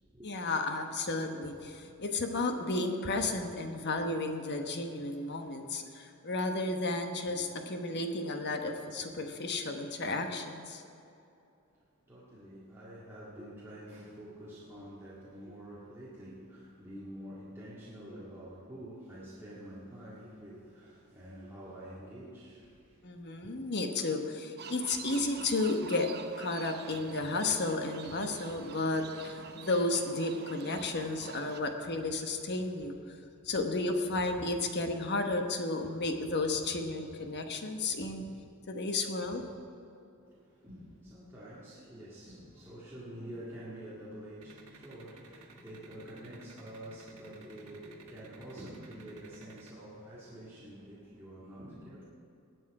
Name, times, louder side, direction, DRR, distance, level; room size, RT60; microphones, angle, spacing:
voice 1, 0.2-10.8 23.0-26.1 26.4-33.0 33.4-38.3 38.7-39.5, left 2 dB, 50° left, 5 dB, 1.2 m, -33 dB
voice 2, 12.1-23.0 23.4-23.5 40.2-52.0, right 1 dB, 10° right, -9 dB, 2.1 m, -47 dB
sound 1, 24.6-31.6, right 6 dB, 50° right, 0.7 m, -47 dB
sound 2, 44.4-49.7, right 3 dB, 75° right, 1.5 m, -54 dB
20.5 x 8.5 x 4.8 m, 2.7 s
head